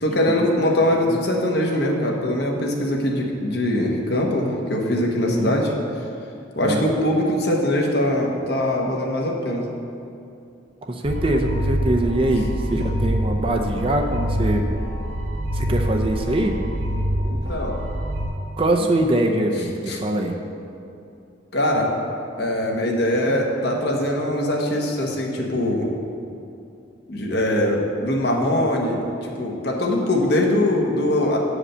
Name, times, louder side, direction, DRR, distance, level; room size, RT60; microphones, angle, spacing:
voice 1, 0.0-5.7 6.5-9.7 17.3-17.8 19.9-20.0 21.5-21.9 22.4-25.9 27.1-31.4, left 1 dB, 55° left, 0 dB, 1.2 m, -22 dB
voice 2, 5.2-5.6 6.6-6.8 10.8-14.6 15.5-16.5 18.6-20.4, right 1 dB, 30° right, 3 dB, 0.5 m, -23 dB
sound 1, 11.0-18.3, equal, 80° right, 2.2 m, -25 dB
8.7 x 5.0 x 6.6 m, 2.6 s
head